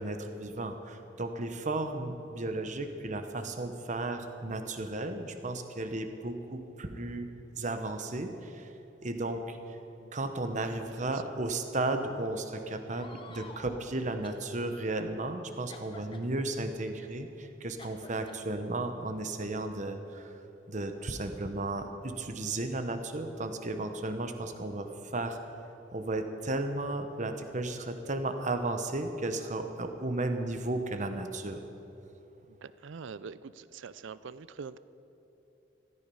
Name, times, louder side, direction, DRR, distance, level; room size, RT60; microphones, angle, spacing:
voice 1, 0.0-7.3 7.6-8.7 9.0-9.6 10.1-20.3 20.7-25.4 25.9-31.6, right 2 dB, 40° right, 7 dB, 1.0 m, -34 dB
voice 2, 10.0-10.4 11.0-11.3 32.5-34.8, right 5 dB, 80° right, 16 dB, 0.5 m, -45 dB
sound 1, 12.8-13.8 14.2-14.5 15.7-16.3 17.8-18.4 19.4-19.5 20.4-21.7, left 3 dB, 25° left, 1.0 m, -51 dB
15.0 x 13.5 x 5.5 m, 2.9 s
head